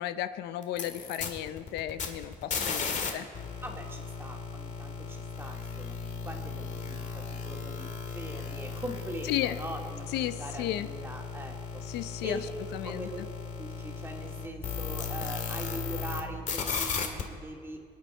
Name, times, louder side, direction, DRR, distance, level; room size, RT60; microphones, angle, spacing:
voice 1, 0.0-3.2 9.3-9.6 10.1-10.9 11.8-12.4 12.7-13.1, left 13 dB, 80° left, 13 dB, 0.6 m, -34 dB
sound 1, 0.6-3.1 3.3-16.2 16.5-17.2, left 5 dB, 45° left, 1.9 m, -36 dB
voice 2, 3.6-6.0 6.2-10.1 10.4-11.8 12.2-12.4 12.8-13.2 13.6-17.8, right 1 dB, 15° right, 1 dB, 2.3 m, -42 dB
25.0 x 9.4 x 4.4 m, 2.2 s
cardioid pair, 110°, 17 cm